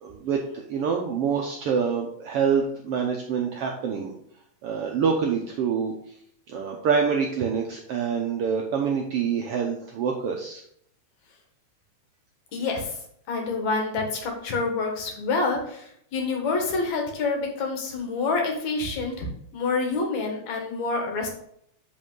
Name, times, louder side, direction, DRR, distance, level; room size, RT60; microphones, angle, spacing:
voice 1, 0.0-4.1 4.6-5.9 6.5-10.6, right 6 dB, 75° right, 1 dB, 1.4 m, -26 dB
voice 2, 12.5-13.0 13.3-19.3 19.5-21.3, left 3 dB, 70° left, 2 dB, 2.7 m, -27 dB
7.6 x 5.4 x 3.8 m, 0.69 s
omnidirectional pair, 3.5 m